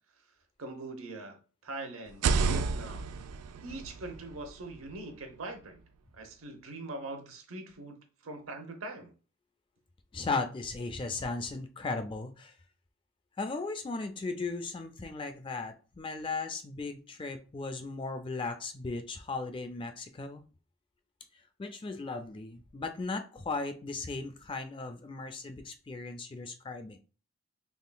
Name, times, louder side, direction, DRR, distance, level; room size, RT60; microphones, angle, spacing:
voice 1, 0.6-3.1 3.6-5.8 6.1-8.0 8.2-9.1, right 2 dB, 70° right, 0.8 m, -42 dB
sound 1, 2.1-5.9, right 4 dB, 90° right, 0.4 m, -33 dB
voice 2, 10.1-12.5 13.4-20.4 21.6-27.0, left 3 dB, 20° left, 0.3 m, -36 dB
3.6 x 3.4 x 2.2 m
head